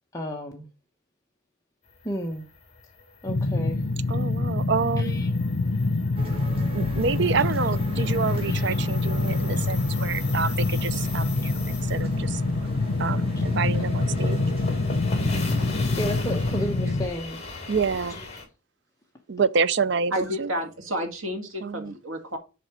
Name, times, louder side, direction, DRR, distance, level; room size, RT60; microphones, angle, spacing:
voice 1, 0.1-0.7 2.0-2.4 3.2-3.8 5.0-5.3 8.0-8.1 8.5-8.6 13.4-13.5 16.0-17.4 18.1-18.2, equal, 15° left, 1.0 m, -32 dB
sound 1, 2.0-18.4, left 2 dB, 30° left, 3.2 m, -39 dB
sound 2, 3.3-17.1, left 2 dB, 75° left, 0.9 m, -26 dB
voice 2, 4.1-5.3 6.7-11.6 11.9-12.4 13.0-14.4 17.7-18.2 19.3-20.5 21.6-21.9, right 5 dB, 55° right, 0.5 m, -27 dB
sound 3, 6.2-16.3, equal, 25° right, 2.3 m, -40 dB
voice 3, 20.1-22.4, equal, 90° right, 2.1 m, -31 dB
7.3 x 4.7 x 4.7 m
head